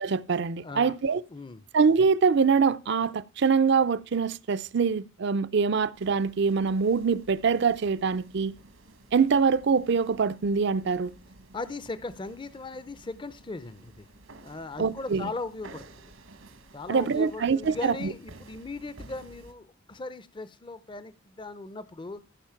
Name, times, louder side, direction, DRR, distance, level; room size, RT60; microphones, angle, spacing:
voice 1, 0.0-1.2 1.7-8.5 9.1-11.1 14.8-15.3 16.9-18.1, right 5 dB, 55° right, 0.5 m, -24 dB
voice 2, 0.6-1.0 1.3-1.6 11.5-14.1 14.4-15.8 16.7-22.2, left 3 dB, 25° left, 0.5 m, -38 dB
sound 1, 5.9-19.5, right 2 dB, 80° right, 1.3 m, -52 dB
15.5 x 5.2 x 5.7 m
head